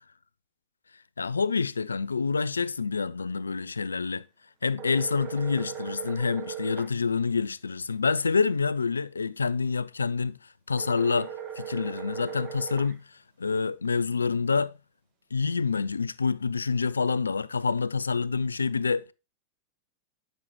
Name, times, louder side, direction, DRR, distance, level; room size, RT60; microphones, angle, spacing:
voice 1, 1.2-4.2 4.6-10.4 10.7-13.0 13.4-14.7 15.3-19.1, left 5 dB, 75° left, 0.4 m, -27 dB
sound 1, 4.8-6.9 10.8-12.9, right 9 dB, 30° right, 1.7 m, -38 dB
12.0 x 6.2 x 3.0 m
figure-of-eight pair, 90°, 0 cm